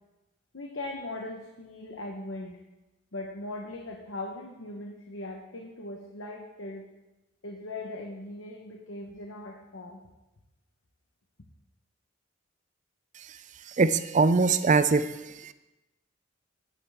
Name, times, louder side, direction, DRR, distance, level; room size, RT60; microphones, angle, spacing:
voice 1, 0.5-2.6 3.1-6.9 7.4-10.0, left 2 dB, 85° left, 2 dB, 1.1 m, -39 dB
voice 2, 13.8-15.1, right 4 dB, 40° right, 13 dB, 0.5 m, -21 dB
13.0 x 9.5 x 3.6 m, 1.0 s
head